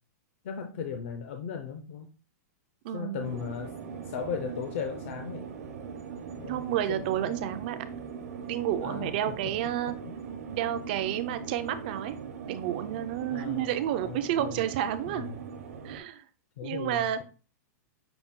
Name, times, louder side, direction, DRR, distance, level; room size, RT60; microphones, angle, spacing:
voice 1, 0.4-2.1 2.9-5.5 6.4-7.4 8.8-9.1 10.1-10.2 13.3-13.6 14.0-14.6 15.1-15.4 16.6-17.2, left 7 dB, 50° left, 5 dB, 0.5 m, -37 dB
voice 2, 2.8-3.3 6.4-7.8 8.5-9.9 10.5-12.2 12.5-15.3 15.8-16.2 16.6-17.2, right 11 dB, 35° right, 11 dB, 0.4 m, -30 dB
sound 1, 3.2-16.0, right 6 dB, 65° right, 0.8 m, -41 dB
5.8 x 2.2 x 3.6 m, 0.36 s
supercardioid pair, 175°, 9 cm